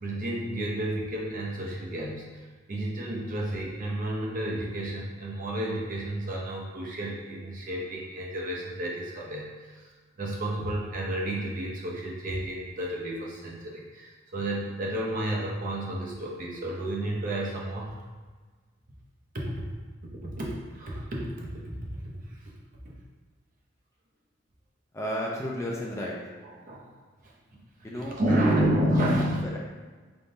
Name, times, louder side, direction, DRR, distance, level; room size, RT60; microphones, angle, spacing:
voice 1, 0.0-2.4 2.7-9.9 10.2-18.0 19.3-19.5 20.2-21.8 22.3-22.4 22.8-22.9 26.6-26.9 27.2-27.6 28.0-29.5, right 1 dB, 45° right, -3 dB, 0.7 m, -31 dB
voice 2, 24.9-26.2 27.8-28.7 29.2-29.6, equal, 15° left, -4 dB, 0.5 m, -33 dB
4.0 x 3.6 x 2.7 m, 1.4 s
head